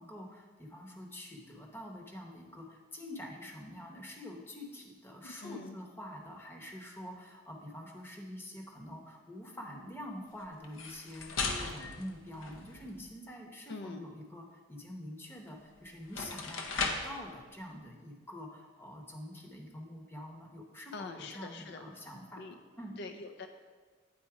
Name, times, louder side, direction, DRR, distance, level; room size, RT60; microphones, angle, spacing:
voice 1, 0.0-23.0, left 1 dB, 10° left, 1 dB, 0.8 m, -46 dB
voice 2, 5.2-5.8 13.7-14.1 20.9-21.8 22.4-22.6 23.0-23.5, left 3 dB, 55° left, 6 dB, 0.4 m, -44 dB
sound 1, 10.6-13.0 15.5-15.6 16.0-17.2, left 4 dB, 80° left, 0.8 m, -37 dB
9.0 x 4.0 x 4.7 m, 1.5 s
head